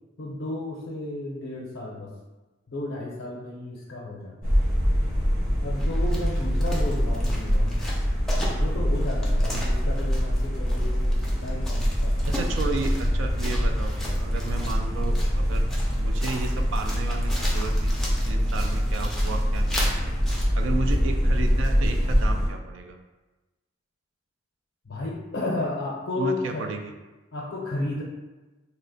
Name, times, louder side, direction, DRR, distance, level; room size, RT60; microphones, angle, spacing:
voice 1, 0.2-2.1 2.7-4.6 5.6-7.8 8.6-12.2 24.9-26.7 27.3-28.0, left 2 dB, 65° left, -4 dB, 0.5 m, -33 dB
sound 1, 4.4-22.5, equal, 25° right, 1.0 m, -24 dB
sound 2, 5.8-20.4, left 1 dB, ahead, 0.4 m, -38 dB
voice 2, 12.3-15.6 16.0-17.9 18.2-20.1 20.5-23.0 26.2-26.9, right 3 dB, 70° right, 5 dB, 0.3 m, -33 dB
2.7 x 2.1 x 3.9 m, 1.1 s
head